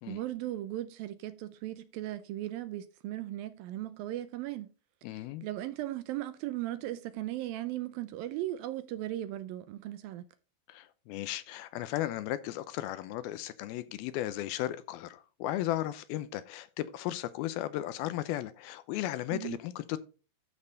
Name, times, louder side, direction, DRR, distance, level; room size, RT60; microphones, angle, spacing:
voice 1, 0.1-4.7 5.4-10.2 19.3-19.6, right 14 dB, 80° right, 2.2 m, -37 dB
voice 2, 5.0-5.4 10.7-20.0, left 14 dB, 80° left, 2.3 m, -35 dB
12.5 x 5.4 x 3.9 m
omnidirectional pair, 4.7 m